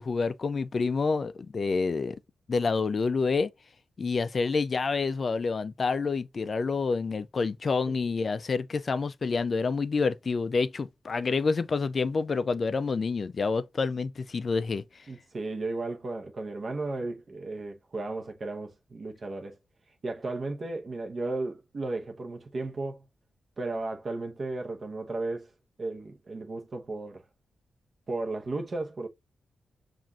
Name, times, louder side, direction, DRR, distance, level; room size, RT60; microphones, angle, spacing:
voice 1, 0.0-2.2 2.5-3.5 4.0-14.8, left 4 dB, 40° left, 0.3 m, -28 dB
voice 2, 15.1-19.6 20.0-23.0 23.6-25.5 25.8-27.2 28.1-29.1, right 2 dB, 40° right, 0.9 m, -34 dB
7.2 x 2.5 x 2.4 m
wide cardioid pair, 120°, 0 cm